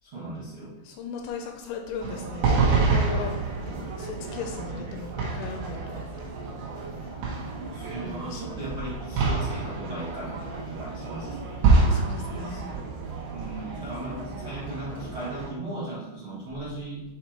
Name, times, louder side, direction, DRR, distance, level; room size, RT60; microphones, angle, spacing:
voice 1, 0.0-0.8 4.7-5.0 7.7-11.6 12.5-12.9 13.3-17.0, right 2 dB, 85° right, -9 dB, 1.2 m, -37 dB
voice 2, 0.8-6.0 7.9-8.6 11.8-12.7, left 5 dB, 85° left, 3 dB, 2.7 m, -37 dB
sound 1, 2.0-15.5, right 3 dB, 70° right, 3.4 m, -28 dB
8.1 x 3.1 x 4.4 m, 1.0 s
omnidirectional pair, 5.4 m